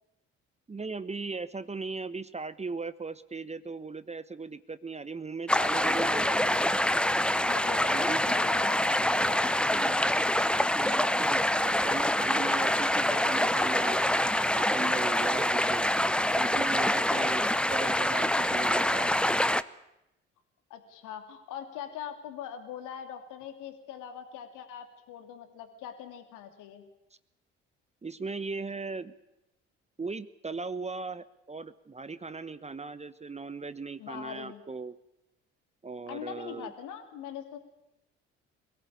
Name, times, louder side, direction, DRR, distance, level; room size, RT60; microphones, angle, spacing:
voice 1, 0.7-6.6 7.8-8.2 9.6-10.1 10.8-14.0 14.6-15.8 16.4-17.4 17.7-19.1 28.0-29.1 30.0-35.0 35.8-36.7, right 4 dB, 20° right, 14 dB, 1.0 m, -38 dB
sound 1, 5.5-19.6, left 1 dB, 5° left, 0.8 m, -26 dB
voice 2, 7.5-9.0 9.3-9.8 20.7-26.8 34.0-34.6 36.1-37.6, left 9 dB, 65° left, 7 dB, 2.6 m, -42 dB
23.5 x 17.0 x 8.5 m, 0.88 s
hypercardioid pair, 55°, 33 cm